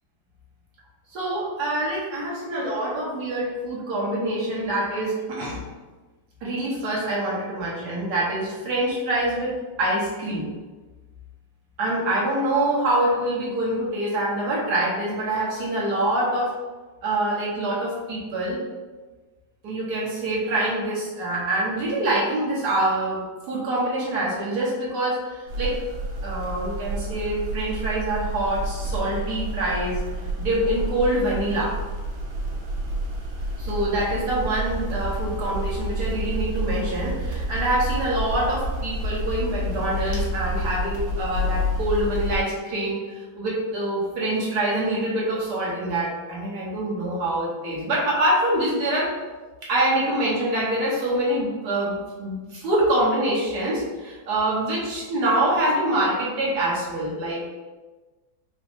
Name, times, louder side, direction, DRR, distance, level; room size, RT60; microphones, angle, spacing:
voice 1, 1.1-5.6 6.4-10.5 11.8-16.5 17.0-18.6 19.6-25.8 26.2-30.0 30.4-31.7 33.6-49.1 49.7-57.5, right 1 dB, 55° right, -5 dB, 1.6 m, -25 dB
sound 1, 25.5-42.4, equal, 80° right, 1.6 m, -29 dB
4.9 x 2.3 x 3.6 m, 1.3 s
omnidirectional pair, 2.2 m